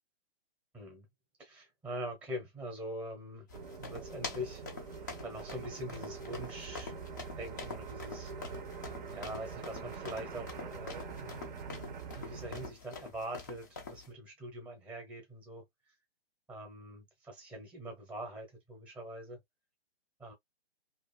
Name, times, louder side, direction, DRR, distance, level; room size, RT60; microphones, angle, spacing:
voice 1, 0.7-1.1 1.4-3.5 3.8-4.6 5.2-6.9 7.4-8.3 9.1-11.5 12.1-15.6 16.5-19.4 20.2-20.3, equal, 5° right, 0.7 m, -43 dB
sound 1, 3.5-14.1, left 4 dB, 20° left, 0.3 m, -46 dB
sound 2, 3.5-12.7, right 5 dB, 50° right, 0.6 m, -44 dB
2.5 x 2.4 x 2.3 m
hypercardioid pair, 135°, 33 cm